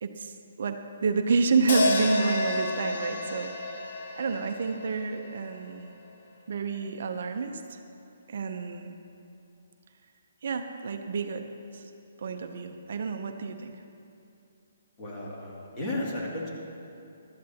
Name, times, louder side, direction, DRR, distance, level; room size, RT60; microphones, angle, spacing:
voice 1, 0.0-3.5 4.2-5.9 6.5-7.8 8.3-9.0 10.4-11.9 12.2-13.8, right 4 dB, 60° right, 6 dB, 0.7 m, -29 dB
sound 1, 1.7-6.0, left 2 dB, 65° left, 1.7 m, -30 dB
voice 2, 15.0-16.5, left 1 dB, 25° left, -5 dB, 2.4 m, -34 dB
15.0 x 12.5 x 2.9 m, 2.7 s
hypercardioid pair, 155°, 0 cm